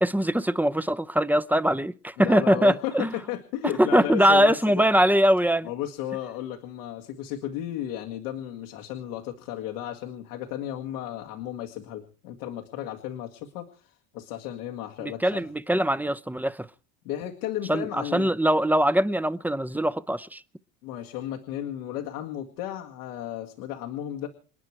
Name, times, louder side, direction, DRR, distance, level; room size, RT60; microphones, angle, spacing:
voice 1, 0.0-3.1 3.8-5.7 15.0-16.7 17.7-20.4, equal, 5° right, 0.7 m, -22 dB
voice 2, 2.2-4.6 5.6-15.4 17.0-18.3 20.8-24.3, left 12 dB, 90° left, 2.1 m, -34 dB
28.0 x 9.7 x 4.6 m
supercardioid pair, 95°, 43 cm